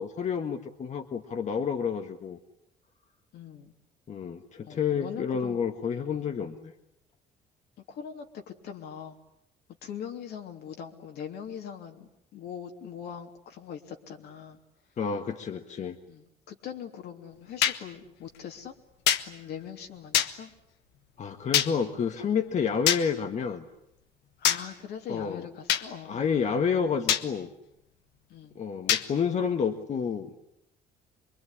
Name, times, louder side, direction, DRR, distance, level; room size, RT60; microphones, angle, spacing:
voice 1, 0.0-2.4 4.1-6.7 15.0-16.0 21.2-23.7 25.1-25.4 26.1-27.5 28.6-30.4, left 6 dB, 45° left, 6 dB, 1.7 m, -29 dB
voice 2, 3.3-3.7 4.6-5.6 6.2-6.3 7.9-9.2 9.8-14.6 16.1-18.7 19.3-20.5 24.4-26.3 28.3-28.5, left 8 dB, 75° left, 4 dB, 3.1 m, -41 dB
sound 1, 17.6-17.8 19.1-19.2 20.1-20.3 21.5-21.7 22.9-23.0 24.4-24.6 25.7-25.8 27.1-27.2 28.9-29.0, left 10 dB, 90° left, 1.4 m, -23 dB
25.0 x 22.5 x 10.0 m, 0.81 s
cardioid pair, 110°, 17 cm